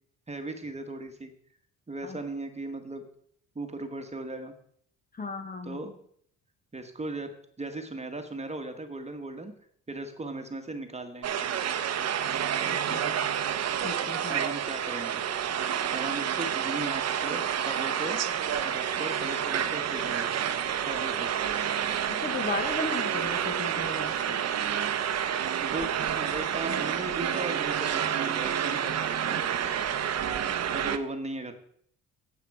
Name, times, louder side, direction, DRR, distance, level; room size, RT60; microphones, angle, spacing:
voice 1, 0.3-1.3 1.9-3.0 3.5-4.5 5.6-6.0 6.7-7.3 7.6-9.5 9.9-11.5 12.9-13.2 14.3-15.2 15.7-18.2 18.6-20.4 20.8-21.3 25.6-29.7 30.7-31.5, right 2 dB, 20° right, 6 dB, 1.4 m, -37 dB
voice 2, 5.1-5.8 12.7-13.0 13.8-14.4 22.2-24.4, left 3 dB, 30° left, 7 dB, 1.4 m, -35 dB
sound 1, 11.2-31.0, right 9 dB, 55° right, 0.9 m, -29 dB
9.1 x 8.3 x 4.8 m, 0.64 s
cardioid pair, 90°, 30 cm